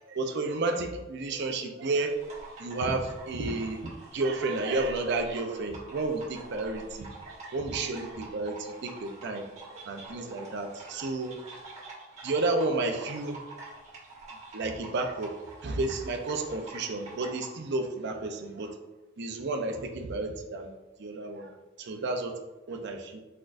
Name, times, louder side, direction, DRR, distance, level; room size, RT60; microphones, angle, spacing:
voice 1, 0.0-2.2 2.6-7.1 7.5-9.5 9.7-11.4 12.2-13.4 14.5-15.3 15.6-18.8 19.2-20.7 21.0-22.3 22.7-23.2, right 2 dB, 55° right, 5 dB, 0.5 m, -31 dB
sound 1, 2.0-17.5, right 2 dB, 35° right, 1.4 m, -47 dB
4.5 x 4.3 x 2.5 m, 1.1 s
head